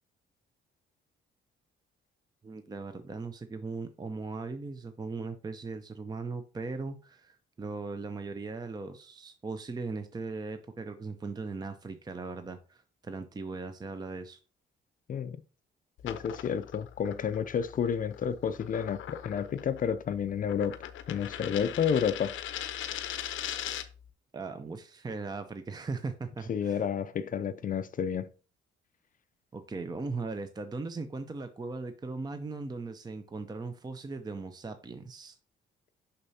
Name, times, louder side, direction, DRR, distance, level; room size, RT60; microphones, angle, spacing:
voice 1, 2.4-14.4 24.3-26.8 29.5-35.4, right 3 dB, 20° right, 0.6 m, -38 dB
voice 2, 15.1-15.4 16.0-20.8 21.1-22.3 26.5-28.3, left 7 dB, 45° left, 0.4 m, -30 dB
sound 1, 16.0-24.0, left 11 dB, 80° left, 0.6 m, -40 dB
6.6 x 5.7 x 2.7 m
cardioid pair, 90°, 20 cm